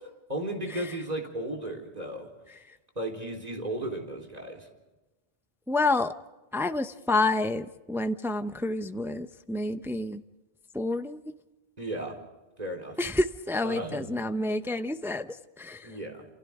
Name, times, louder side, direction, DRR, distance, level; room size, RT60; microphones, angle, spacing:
voice 1, 0.3-2.3 3.0-4.7 11.8-12.2 12.6-13.0 13.6-14.2 15.8-16.3, right 1 dB, 40° right, 2 dB, 4.1 m, -35 dB
voice 2, 5.7-6.1 6.5-10.2 10.7-11.2 13.0-15.9, left 2 dB, 5° right, 9 dB, 0.6 m, -29 dB
28.5 x 28.5 x 3.6 m, 1.1 s
omnidirectional pair, 1.0 m